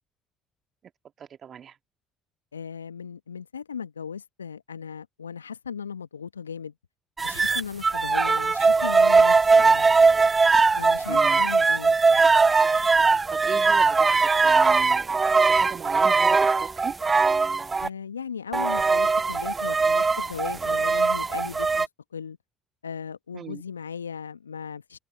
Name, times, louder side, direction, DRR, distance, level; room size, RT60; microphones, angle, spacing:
voice 1, 1.2-1.8 11.1-11.4 13.3-15.2 15.5-17.0 23.3-23.6, right 8 dB, 45° right, 2.4 m, -38 dB
voice 2, 2.5-6.7 7.2-10.0 10.7-11.9 17.8-22.4 22.8-25.0, left 7 dB, 85° left, 1.4 m, -37 dB
sound 1, 7.2-17.9 18.5-21.9, right 4 dB, 25° right, 0.6 m, -20 dB
open air
figure-of-eight pair, 55°, 0 cm